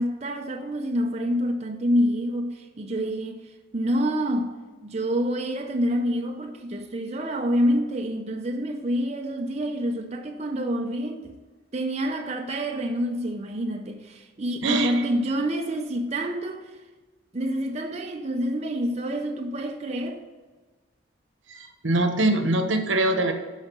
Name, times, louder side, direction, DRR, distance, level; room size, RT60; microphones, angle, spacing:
voice 1, 0.0-4.5 4.8-11.3 11.7-16.8 17.3-20.2, equal, 35° right, 0.6 m, -27 dB
voice 2, 14.6-15.0 21.5-23.3, right 2 dB, 80° right, 1.1 m, -23 dB
12.0 x 4.9 x 5.5 m
head